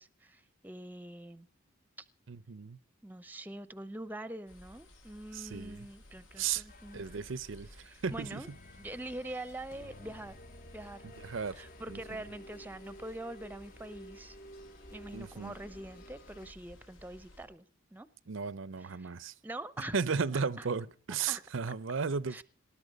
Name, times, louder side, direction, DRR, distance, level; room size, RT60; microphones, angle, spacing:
voice 1, 0.0-1.5 2.0-2.1 3.0-7.1 7.8-8.5 8.8-10.4 10.7-11.0 11.5-14.4 14.9-17.6 17.9-18.1 18.8-19.1 19.4-20.0 20.3-20.7 21.3-21.4 22.3-22.4, right 1 dB, 10° right, 0.7 m, -44 dB
voice 2, 2.3-2.8 5.3-5.9 6.4-6.6 6.9-7.7 8.0-8.4 11.2-11.6 11.9-12.0 15.1-15.5 18.3-19.3 19.9-22.4, right 5 dB, 70° right, 0.6 m, -35 dB
sound 1, 4.5-17.5, left 1 dB, 85° left, 4.2 m, -56 dB
sound 2, 6.3-16.5, equal, 45° left, 0.9 m, -54 dB
19.0 x 11.5 x 5.2 m
head